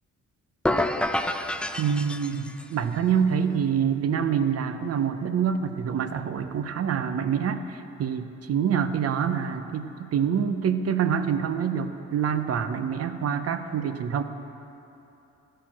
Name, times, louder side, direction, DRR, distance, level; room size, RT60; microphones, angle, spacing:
sound 1, 0.6-2.7, left 1 dB, 5° left, 0.3 m, -28 dB
voice 1, 1.8-14.2, right 7 dB, 55° right, 9 dB, 0.7 m, -26 dB
11.5 x 6.6 x 6.0 m, 3.0 s
cardioid pair, 90°, 30 cm